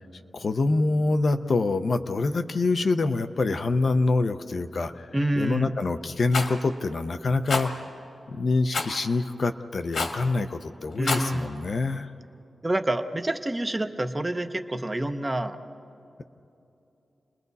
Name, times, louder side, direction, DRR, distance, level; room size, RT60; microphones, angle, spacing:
voice 1, 0.3-5.1 5.3-7.7 8.3-12.1, left 3 dB, 45° left, 8 dB, 0.6 m, -25 dB
voice 2, 5.1-5.7 11.0-11.4 12.6-15.6, right 1 dB, 15° right, 7 dB, 0.7 m, -27 dB
Rattle, 6.3-6.5 7.5-7.7 8.7-9.0 9.9-10.2 10.9-11.3, left 3 dB, 65° left, 1.7 m, -27 dB
30.0 x 21.0 x 4.1 m, 2.8 s
wide cardioid pair, 180°, 0 cm